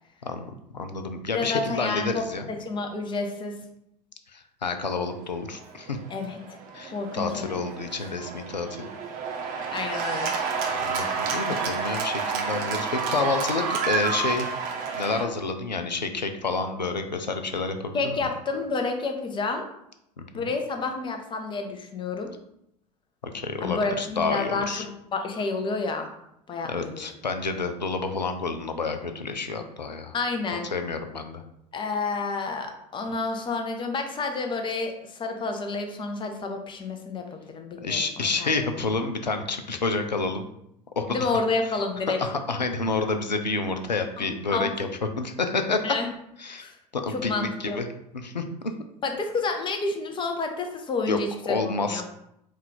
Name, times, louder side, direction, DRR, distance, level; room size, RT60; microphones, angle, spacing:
voice 1, 0.7-2.5 4.3-6.0 6.7-8.9 10.7-14.5 14.9-18.3 20.2-20.5 23.3-24.8 26.7-30.1 30.7-31.4 37.8-40.4 41.0-41.3 42.2-44.9 45.2-46.0 46.4-46.7 46.9-47.9 48.1-48.4 51.1-51.2 51.4-52.0, left 3 dB, 90° left, 7 dB, 0.4 m, -29 dB
voice 2, 1.3-3.6 6.1-6.6 6.9-7.7 9.7-10.3 17.9-19.7 20.3-22.3 23.6-26.1 26.5-27.0 30.1-30.7 31.7-38.8 41.1-42.2 44.2-44.3 44.5-44.7 45.8-46.1 46.6-46.8 47.1-47.8 49.0-52.0, left 3 dB, 25° left, 4 dB, 0.7 m, -30 dB
Cheering / Applause, 5.6-15.2, right 5 dB, 40° right, 0.7 m, -30 dB
4.2 x 2.4 x 3.9 m, 0.79 s
figure-of-eight pair, 75°, 21 cm